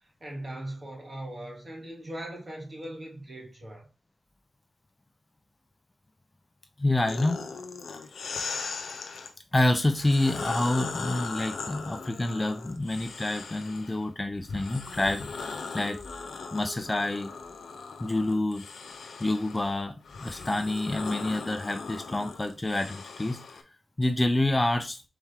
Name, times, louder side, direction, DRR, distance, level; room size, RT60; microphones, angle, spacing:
voice 1, 0.0-3.9, right 1 dB, 40° right, 2.4 m, -40 dB
voice 2, 6.8-7.4 9.5-15.5 15.7-16.0 16.5-17.3 18.0-18.6 19.2-19.9 20.2-23.4 24.0-25.0, left 2 dB, 25° left, 0.6 m, -27 dB
sound 1, 7.1-9.3 9.9-14.0 14.5-23.6, left 4 dB, 80° left, 0.7 m, -39 dB
4.2 x 3.3 x 3.6 m
cardioid pair, 45°, 0 cm